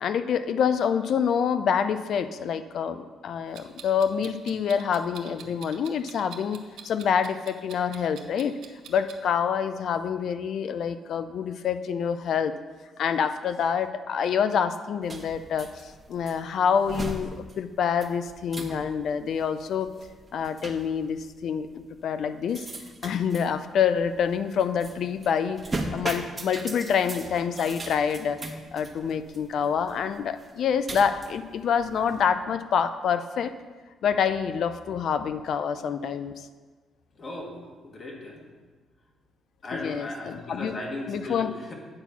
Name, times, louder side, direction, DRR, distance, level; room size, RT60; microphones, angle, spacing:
voice 1, 0.0-6.6 6.8-8.6 8.9-12.5 13.0-17.3 17.6-19.9 20.3-22.7 23.0-25.6 25.9-28.4 28.7-33.5 34.0-36.5 39.7-40.8 41.1-41.5, left 7 dB, 65° left, 11 dB, 0.4 m, -27 dB
Clock, 3.5-9.2, right 8 dB, 80° right, 0.7 m, -47 dB
sound 1, 15.0-32.3, right 2 dB, 25° right, 1.0 m, -39 dB
voice 2, 37.2-38.4 39.6-41.7, left 2 dB, 40° left, 0 dB, 1.7 m, -37 dB
8.8 x 4.2 x 5.8 m, 1.4 s
cardioid pair, 90°, 0 cm